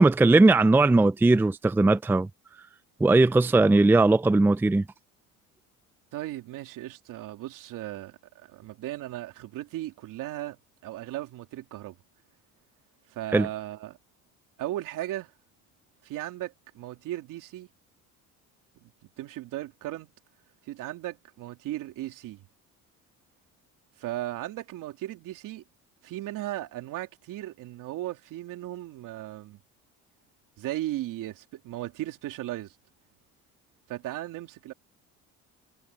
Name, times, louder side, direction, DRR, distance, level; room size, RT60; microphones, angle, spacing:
voice 1, 0.0-2.3 3.0-4.8 13.3-13.5, right 2 dB, 5° right, 0.5 m, -19 dB
voice 2, 6.1-10.6 10.8-11.9 13.1-14.0 14.6-15.3 16.0-17.7 18.8-18.9 19.2-20.1 20.7-22.4 24.0-25.6 26.0-29.6 30.6-32.7 33.9-34.7, right 15 dB, 70° right, 3.1 m, -36 dB
cardioid pair, 115°, 34 cm